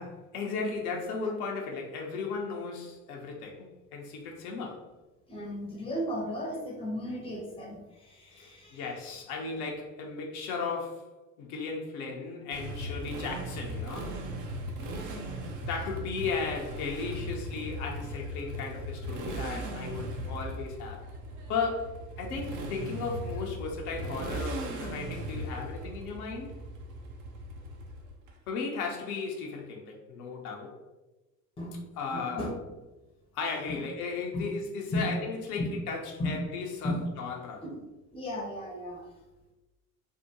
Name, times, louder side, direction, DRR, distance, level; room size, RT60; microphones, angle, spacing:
voice 1, 0.0-4.9 8.3-14.1 15.7-21.0 21.5-26.5 28.5-30.8 32.0-32.5 33.3-37.6, left 4 dB, 65° left, 0 dB, 0.8 m, -36 dB
voice 2, 5.3-8.9 31.6-31.9 32.1-32.5 33.7-33.8 34.3-34.4 34.9-35.1 35.6-35.8 36.2-36.4 36.8-37.1 37.6-37.8 38.1-39.1, left 1 dB, 10° left, -1 dB, 0.7 m, -35 dB
Motorcycle, 12.5-28.3, right 1 dB, 40° right, 0.6 m, -38 dB
3.5 x 2.1 x 2.9 m, 1.1 s
figure-of-eight pair, 65°, 48 cm